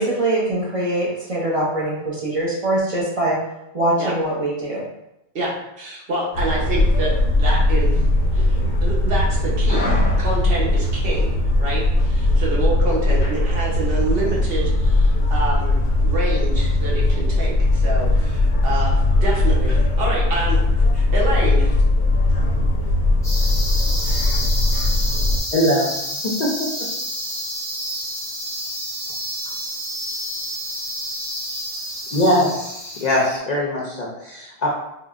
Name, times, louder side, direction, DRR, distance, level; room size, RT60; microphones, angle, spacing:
voice 1, 0.0-3.4 3.7-4.9, right 1 dB, 40° right, -6 dB, 0.6 m, -22 dB
voice 2, 5.8-8.0 8.3-9.9 10.2-11.3 11.6-20.6 20.9-21.8, right 2 dB, 60° right, -4 dB, 1.0 m, -27 dB
sound 1, 6.3-25.4, left 2 dB, 80° left, 0.9 m, -19 dB
sound 2, 23.2-33.4, equal, 5° left, 0.6 m, -29 dB
voice 3, 25.5-25.9 26.2-26.9 32.1-32.7 33.0-34.7, left 1 dB, 50° left, -5 dB, 0.6 m, -21 dB
3.6 x 2.1 x 2.4 m, 0.85 s
omnidirectional pair, 1.1 m